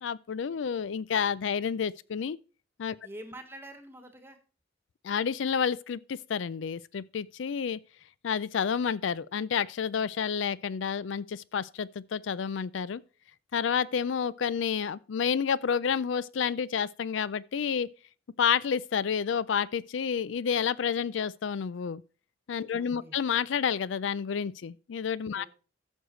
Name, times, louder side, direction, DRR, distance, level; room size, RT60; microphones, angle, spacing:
voice 1, 0.0-2.4 2.8-3.0 5.0-7.8 8.2-13.0 13.5-17.9 18.4-22.0 22.5-25.4, left 7 dB, 70° left, 0.4 m, -30 dB
voice 2, 3.0-4.4 22.7-23.2 25.3-25.5, right 1 dB, 10° right, 1.4 m, -46 dB
14.0 x 6.4 x 3.1 m
head